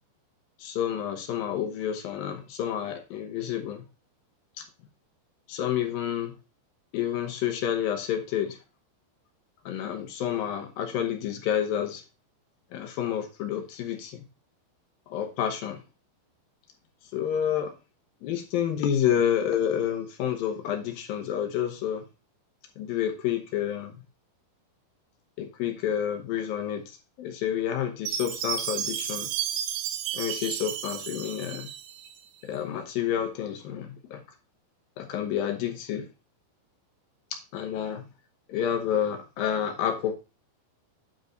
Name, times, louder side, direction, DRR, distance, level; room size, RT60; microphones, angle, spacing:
voice 1, 0.6-3.8 4.6-4.7 5.5-6.3 6.9-8.6 9.7-12.0 12.7-14.2 15.1-15.8 17.1-17.7 18.2-22.0 22.8-23.9 25.4-29.3 30.1-31.7 32.4-34.2 35.0-36.1 37.3-38.0 38.5-40.1, left 9 dB, 75° left, 2.2 m, -29 dB
Chime, 28.1-32.2, right 10 dB, 80° right, 2.9 m, -32 dB
9.4 x 4.7 x 3.8 m
omnidirectional pair, 5.2 m